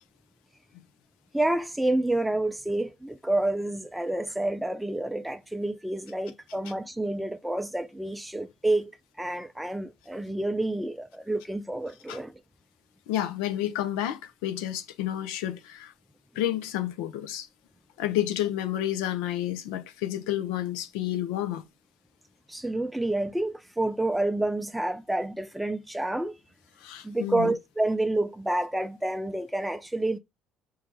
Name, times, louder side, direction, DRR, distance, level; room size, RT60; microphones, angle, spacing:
voice 1, 1.3-8.9 9.2-12.4 22.5-26.4 27.0-30.2, right 1 dB, 5° right, 0.3 m, -29 dB
voice 2, 13.1-15.9 16.3-17.5 18.0-21.6 26.8-27.5, left 12 dB, 90° left, 0.7 m, -30 dB
4.7 x 2.4 x 4.6 m
cardioid pair, 105°, 0 cm